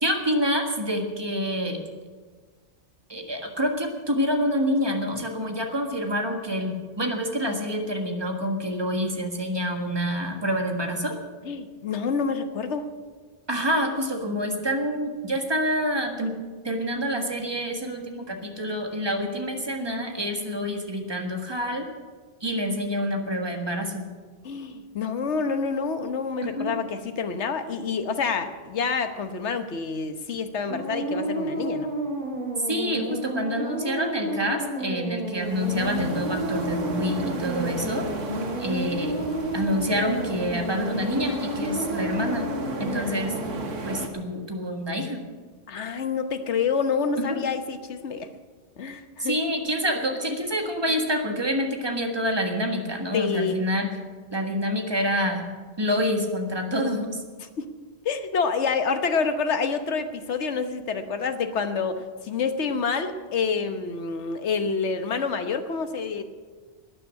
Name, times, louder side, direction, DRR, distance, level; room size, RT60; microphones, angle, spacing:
voice 1, 0.0-1.8 3.1-11.1 13.5-16.3 16.6-21.9 22.4-24.1 26.4-26.8 32.6-38.1 38.6-39.2 39.5-42.5 42.8-43.3 43.8-45.2 47.2-47.4 49.2-53.9 54.3-55.4 55.8-57.2, equal, 20° right, 3 dB, 1.6 m, -27 dB
voice 2, 11.4-12.9 24.4-31.9 42.9-43.1 45.7-48.3 48.8-49.4 53.1-53.5 57.6-57.7 58.0-66.2, left 5 dB, 65° left, 8 dB, 1.3 m, -27 dB
sound 1, 30.7-44.0, right 1 dB, 45° right, 2.1 m, -31 dB
sound 2, 35.3-44.1, right 3 dB, 85° right, 1.7 m, -35 dB
12.5 x 9.7 x 8.5 m, 1.5 s
omnidirectional pair, 1.3 m